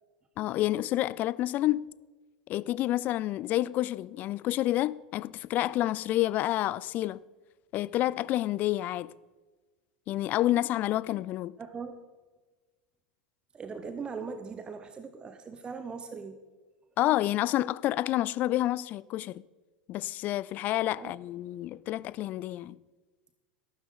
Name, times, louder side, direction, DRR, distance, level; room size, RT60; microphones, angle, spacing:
voice 1, 0.4-1.9 2.5-7.2 7.7-9.1 10.1-11.6 17.0-19.4 19.9-22.8, left 15 dB, 40° left, 0.4 m, -29 dB
voice 2, 11.6-11.9 13.5-16.4 21.0-21.2, right 5 dB, 20° right, 1.0 m, -40 dB
14.0 x 12.5 x 4.0 m
figure-of-eight pair, 85°, 5 cm